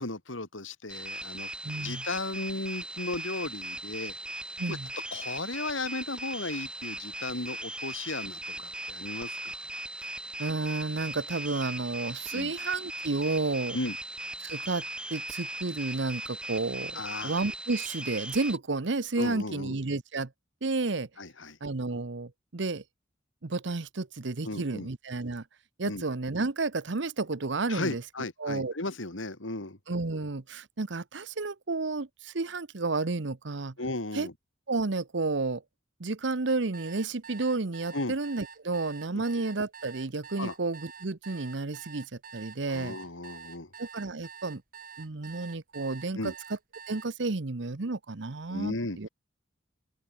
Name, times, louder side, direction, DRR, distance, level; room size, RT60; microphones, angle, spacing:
voice 1, 0.0-1.5 1.8-4.1 4.7-4.8 5.1-9.6 12.3-12.5 13.7-14.0 16.9-17.3 19.2-19.7 21.2-21.6 24.4-24.9 25.8-26.0 27.7-29.8 33.8-34.3 37.9-38.1 39.1-39.2 40.4-40.5 42.7-43.7 46.1-46.3 48.5-49.1, left 2 dB, 85° left, 3.3 m, -35 dB
sound 1, 0.9-18.6, right 1 dB, 5° right, 3.2 m, -39 dB
voice 2, 1.6-2.0 4.6-4.9 10.4-13.8 14.4-14.8 15.1-20.3 20.6-21.1 21.6-22.8 23.4-25.4 25.8-28.0 28.4-28.7 29.9-33.7 34.1-34.3 34.7-35.6 36.0-43.0 43.8-44.6 45.0-46.3 46.9-49.1, right 3 dB, 65° right, 1.0 m, -31 dB
sound 2, 36.5-47.1, right 6 dB, 50° right, 5.1 m, -47 dB
open air
head